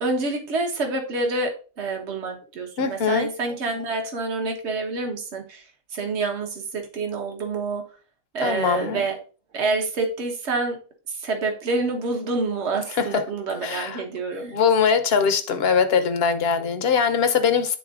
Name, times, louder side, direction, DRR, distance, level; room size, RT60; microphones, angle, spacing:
voice 1, 0.0-5.6 5.9-7.8 8.3-9.2 9.5-10.8 11.2-14.5, right 3 dB, 60° right, 3 dB, 1.4 m, -27 dB
voice 2, 2.8-3.3 8.4-9.0 12.9-13.2 13.6-14.0 14.5-17.8, left 6 dB, 55° left, 7 dB, 0.9 m, -21 dB
10.5 x 3.7 x 2.4 m, 0.38 s
omnidirectional pair, 1.3 m